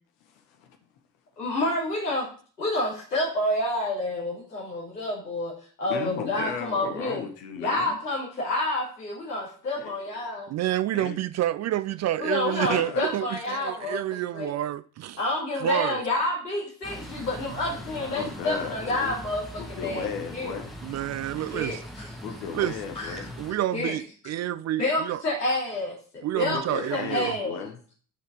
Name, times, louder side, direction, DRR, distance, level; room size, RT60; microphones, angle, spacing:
voice 1, 0.3-0.7 5.9-8.0 9.8-10.3 10.9-11.1 12.5-13.1 17.9-19.1 19.6-20.7 22.2-23.3 26.5-27.8, left 7 dB, 65° left, 1.8 m, -36 dB
voice 2, 1.4-2.3 2.6-5.5 5.8-7.2 7.6-10.5 12.2-14.0 14.3-14.5 15.2-19.4 19.7-20.6 21.5-22.1 23.0-23.3 23.7-23.9 24.8-26.0 26.4-27.6, left 1 dB, 85° left, 2.9 m, -29 dB
voice 3, 10.5-15.2 15.6-16.0 17.2-17.3 20.8-21.8 22.5-22.8 23.4-25.2 26.2-27.3, right 13 dB, 35° right, 0.4 m, -28 dB
sound 1, 16.8-23.5, equal, ahead, 2.1 m, -41 dB
11.5 x 5.6 x 5.1 m
figure-of-eight pair, 45°, 47 cm